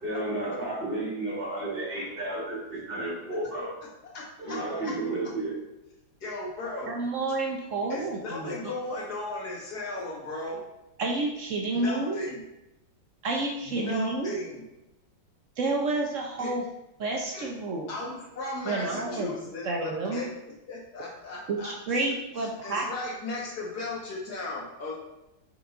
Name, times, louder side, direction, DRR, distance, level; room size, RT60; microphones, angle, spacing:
voice 1, 0.0-3.7 4.4-5.5, right 2 dB, 30° right, -4 dB, 2.1 m, -32 dB
voice 2, 4.1-4.6 4.8-4.9 6.2-6.9 7.9-10.6 11.7-12.4 13.6-14.6 16.4-16.5 17.3-17.5 17.9-20.3 20.7-22.0 22.6-25.0, left 2 dB, 50° left, -4 dB, 2.2 m, -36 dB
voice 3, 6.9-8.7 11.0-12.2 13.2-14.4 15.6-16.6 17.0-17.9 18.6-19.3 19.6-20.2 21.5-22.9, right 3 dB, 70° right, 1 dB, 0.7 m, -30 dB
5.8 x 5.2 x 3.9 m, 0.93 s
omnidirectional pair, 2.2 m